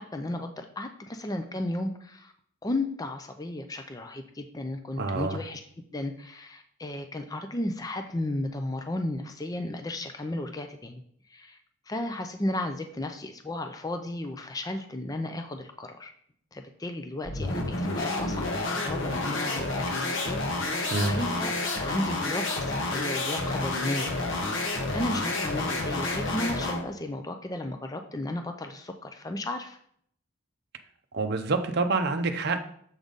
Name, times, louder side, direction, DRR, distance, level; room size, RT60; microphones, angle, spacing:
voice 1, 0.0-2.3 2.6-5.6 5.9-11.0 11.3-11.6 11.9-16.1 16.5-29.8, left 1 dB, 15° left, 6 dB, 0.4 m, -34 dB
voice 2, 5.0-5.4 20.9-21.2 31.1-32.6, right 3 dB, 50° right, 6 dB, 0.6 m, -27 dB
sound 1, 17.2-26.9, left 2 dB, 55° left, 1.1 m, -30 dB
7.2 x 3.9 x 5.2 m, 0.64 s
head